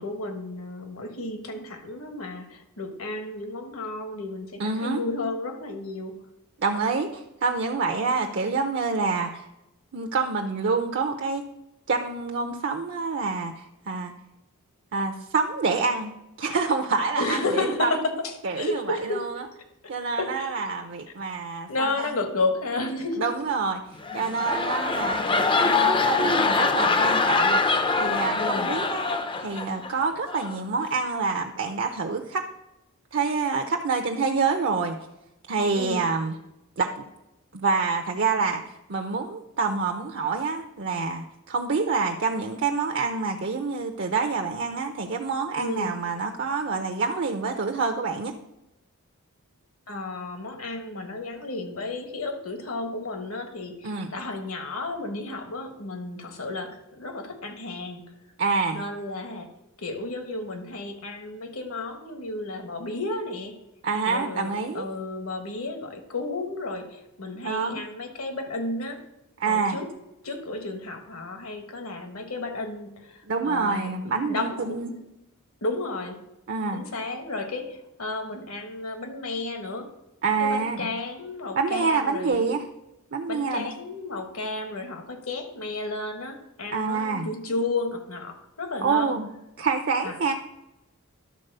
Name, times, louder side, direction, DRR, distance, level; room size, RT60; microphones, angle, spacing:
voice 1, 0.0-6.2 17.2-19.2 20.2-20.5 21.7-23.3 28.3-28.7 35.7-36.1 45.6-45.9 49.9-58.1 58.7-59.5 59.8-63.5 64.0-69.0 69.4-69.9 70.2-73.9 74.3-74.8 75.6-76.2 76.7-79.9 80.4-82.5 83.3-89.1 90.0-90.1, left 2 dB, 70° left, 6 dB, 1.4 m, -32 dB
voice 2, 4.6-5.0 6.6-9.5 9.9-11.4 11.9-14.1 14.9-16.1 16.4-17.9 18.4-19.5 19.9-22.1 23.2-23.8 24.1-32.5 33.1-35.0 35.5-36.4 36.8-37.0 37.5-38.6 38.9-48.3 53.8-54.1 58.4-58.8 63.8-64.9 67.4-67.8 69.4-69.8 73.3-74.9 76.5-76.8 80.2-80.9 81.5-82.6 83.1-83.7 86.7-87.3 88.8-89.3 89.6-90.3, right 4 dB, 55° right, 4 dB, 0.7 m, -27 dB
sound 1, 23.9-29.9 30.3-30.6, left 4 dB, 25° left, 0.5 m, -24 dB
11.5 x 4.1 x 6.6 m, 0.90 s
head